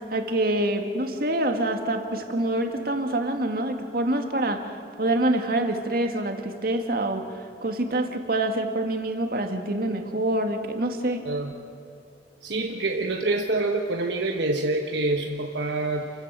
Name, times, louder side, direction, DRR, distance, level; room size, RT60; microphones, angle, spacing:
voice 1, 0.1-4.7 5.0-7.2 7.6-11.2, right 1 dB, 55° right, 5 dB, 2.0 m, -26 dB
voice 2, 12.4-16.1, right 2 dB, 75° right, 3 dB, 1.2 m, -26 dB
28.0 x 16.0 x 7.7 m, 2.8 s
head